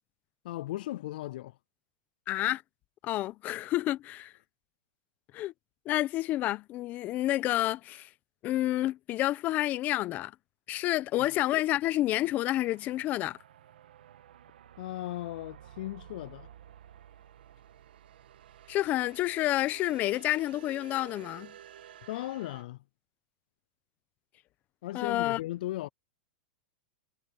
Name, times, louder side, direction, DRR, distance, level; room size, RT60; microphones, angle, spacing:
voice 1, 0.4-1.6 11.2-11.3 14.8-16.5 22.1-22.8 24.8-25.9, left 15 dB, 65° left, 0.4 m, -37 dB
voice 2, 2.3-2.6 3.0-4.3 5.3-5.5 5.8-8.1 8.4-10.3 10.7-13.4 18.7-21.5 24.9-25.4, left 15 dB, 35° left, 0.9 m, -29 dB
sound 1, 12.2-22.6, right 10 dB, 85° right, 1.5 m, -52 dB
supercardioid pair, 140°, 5 cm